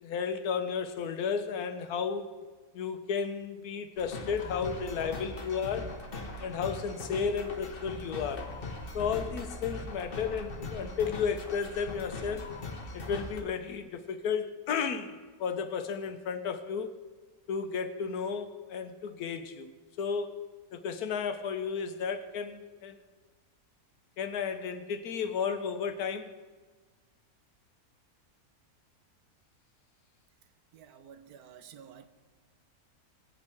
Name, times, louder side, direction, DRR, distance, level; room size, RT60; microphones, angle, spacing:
voice 1, 0.0-2.3 2.7-6.0 6.4-8.4 8.9-12.5 12.9-16.9 17.5-19.7 20.0-20.4 20.7-23.0 24.2-26.3, left 6 dB, 75° left, 1.3 m, -33 dB
sound 1, 4.0-13.4, left 2 dB, 40° left, 1.2 m, -40 dB
voice 2, 30.7-32.1, right 8 dB, 80° right, 1.2 m, -51 dB
19.0 x 8.3 x 3.4 m
omnidirectional pair, 1.6 m